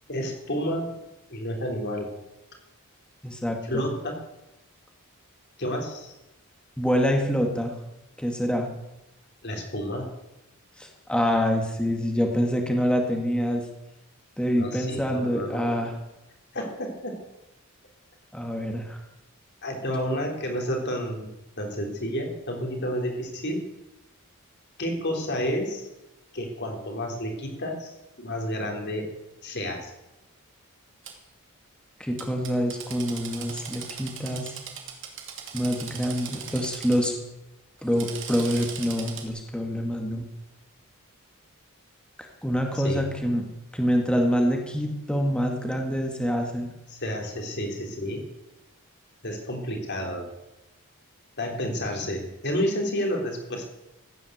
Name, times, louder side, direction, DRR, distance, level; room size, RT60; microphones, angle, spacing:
voice 1, 0.1-0.9 1.3-2.1 3.6-4.2 5.6-6.1 9.4-10.1 14.5-15.8 16.5-17.2 19.6-21.3 21.6-23.6 24.8-25.9 26.3-29.1 29.4-29.9 42.7-43.1 46.9-48.2 49.2-50.3 51.4-53.7, equal, 50° left, 2 dB, 3.7 m, -30 dB
voice 2, 3.2-3.8 6.8-7.7 8.2-8.7 10.8-13.6 14.4-15.9 18.3-19.0 32.0-34.6 35.5-37.1 37.8-40.3 42.4-43.5 43.7-46.7, equal, 5° left, 2 dB, 2.0 m, -26 dB
Drill, 31.0-31.1 32.2-37.1 37.8-39.3, right 7 dB, 55° right, 2.7 m, -39 dB
15.5 x 9.7 x 8.1 m, 0.94 s
head